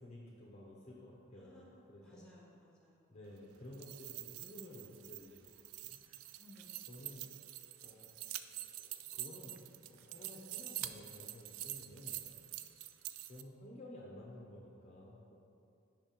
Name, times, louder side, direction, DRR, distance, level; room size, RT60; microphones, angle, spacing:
voice 1, 0.0-2.2 3.1-5.4 5.8-6.0 6.9-7.3 7.8-8.1 8.6-12.2 13.3-15.3, left 1 dB, 35° left, -4 dB, 0.7 m, -53 dB
voice 2, 1.4-3.2 6.4-6.8 12.3-12.6, equal, 5° left, -4 dB, 1.1 m, -61 dB
sound 1, 3.6-13.4, right 14 dB, 90° right, 0.3 m, -46 dB
5.6 x 5.3 x 4.4 m, 2.5 s
head